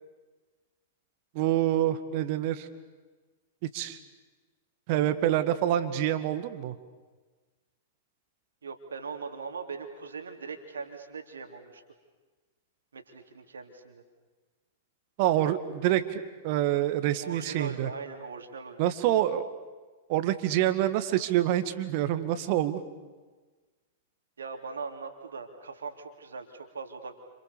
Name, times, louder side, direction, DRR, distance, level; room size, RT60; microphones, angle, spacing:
voice 1, 1.3-2.7 3.6-4.0 4.9-6.7 15.2-17.9 18.8-19.4 20.1-22.8, right 12 dB, 45° right, 11 dB, 2.0 m, -26 dB
voice 2, 8.6-11.8 12.9-14.0 17.2-18.8 24.4-27.1, right 5 dB, 70° right, 5 dB, 3.5 m, -40 dB
30.0 x 28.0 x 7.0 m, 1.3 s
figure-of-eight pair, 100°, 0 cm